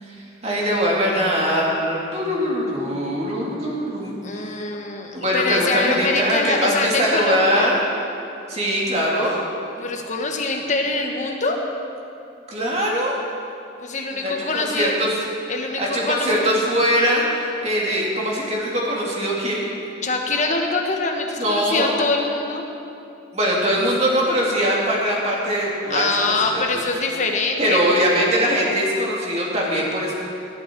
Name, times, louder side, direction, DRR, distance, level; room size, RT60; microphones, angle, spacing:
voice 1, 0.4-4.5 5.1-7.8 8.5-9.4 12.5-13.2 14.1-15.1 15.8-19.7 21.4-21.9 23.3-26.1 26.5-26.6 27.6-30.2, equal, 35° right, -4 dB, 2.7 m, -22 dB
voice 2, 4.2-7.7 9.8-11.6 13.8-14.9 15.5-16.5 20.0-22.6 25.9-27.8, left 3 dB, 40° left, 2 dB, 1.4 m, -24 dB
19.5 x 11.0 x 4.6 m, 2.7 s
head